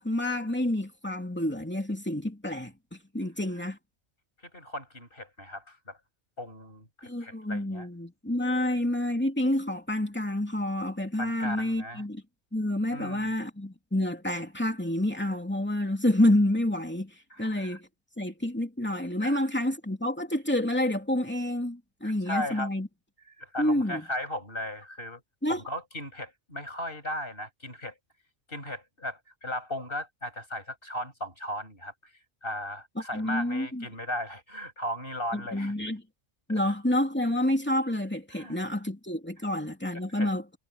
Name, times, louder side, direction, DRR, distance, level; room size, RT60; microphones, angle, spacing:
voice 1, 0.0-3.8 7.0-12.2 12.5-17.1 17.4-17.9 18.2-22.9 23.6-24.0 25.4-25.6 33.1-33.8 35.3-36.0 36.5-40.4, left 1 dB, 10° left, 2.8 m, -28 dB
voice 2, 4.5-6.0 6.4-7.9 11.2-12.0 12.9-13.3 17.3-17.8 19.2-19.4 22.0-22.7 23.4-25.2 25.5-28.0 28.5-31.9 32.4-35.7 36.5-36.7 38.3-38.6 40.1-40.3, left 1 dB, 50° left, 8.4 m, -37 dB
omnidirectional pair, 1.2 m